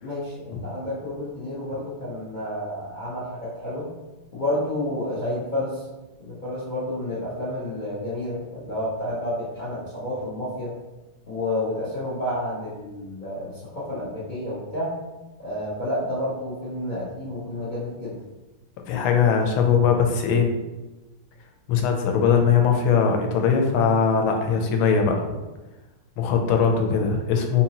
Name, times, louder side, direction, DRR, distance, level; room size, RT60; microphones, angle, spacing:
voice 1, 0.0-3.9 4.3-5.8 6.2-10.7 11.3-14.9 15.4-18.1, left 1 dB, 70° left, -9 dB, 0.4 m, -30 dB
voice 2, 18.9-20.6 21.7-25.3 26.2-27.6, left 6 dB, 85° left, 3 dB, 1.5 m, -20 dB
3.9 x 2.8 x 2.8 m, 1.1 s
omnidirectional pair, 2.3 m